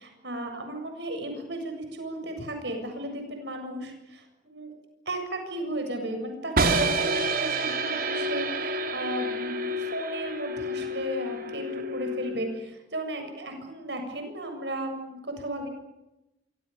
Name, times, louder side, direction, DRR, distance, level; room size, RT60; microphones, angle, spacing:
voice 1, 0.0-4.7 5.1-7.1 7.4-15.7, right 1 dB, 70° right, 5 dB, 7.5 m, -35 dB
sound 1, 6.6-12.5, right 2 dB, 55° right, 3.2 m, -28 dB
28.0 x 25.0 x 7.1 m, 0.95 s
head